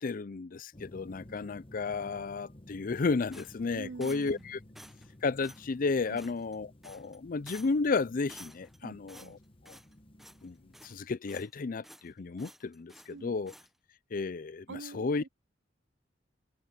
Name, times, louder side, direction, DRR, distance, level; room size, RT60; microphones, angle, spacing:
voice 1, 0.0-4.6 5.2-9.4 9.6-9.8 10.4-10.6 10.8-13.5 14.1-15.2, left 4 dB, 50° left, 0.5 m, -33 dB
sound 1, 0.7-11.0, left 1 dB, 30° left, 1.4 m, -54 dB
sound 2, 3.3-4.4 4.7-5.1 5.4-5.7 6.2-6.6 6.8-7.2 7.5-7.9 8.3-8.8 9.1-9.9 10.2-10.5 10.7-11.5 11.8-12.1 12.4-13.1 13.5-13.7, equal, ahead, 0.6 m, -52 dB
voice 2, 3.7-4.5 6.1-6.2 8.8-9.4 13.1-13.3 14.7-15.3, right 4 dB, 75° right, 0.5 m, -46 dB
head